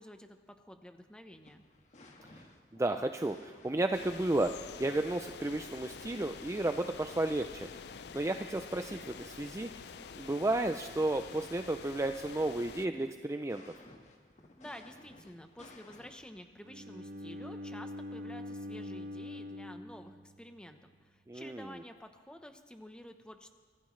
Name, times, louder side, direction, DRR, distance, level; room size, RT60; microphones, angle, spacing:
voice 1, 0.0-1.6 14.6-23.5, left 1 dB, 5° left, 6 dB, 0.9 m, -50 dB
sound 1, 1.3-16.4, left 1 dB, 40° left, 1.6 m, -58 dB
voice 2, 2.7-7.7 8.1-9.9 10.2-13.6 21.3-21.8, right 2 dB, 15° right, 7 dB, 0.4 m, -33 dB
sound 2, 3.9-12.9, left 6 dB, 65° left, 0.4 m, -48 dB
Bowed string instrument, 16.6-20.7, left 1 dB, 50° right, 0.7 m, -44 dB
25.5 x 15.0 x 3.2 m, 1.5 s
head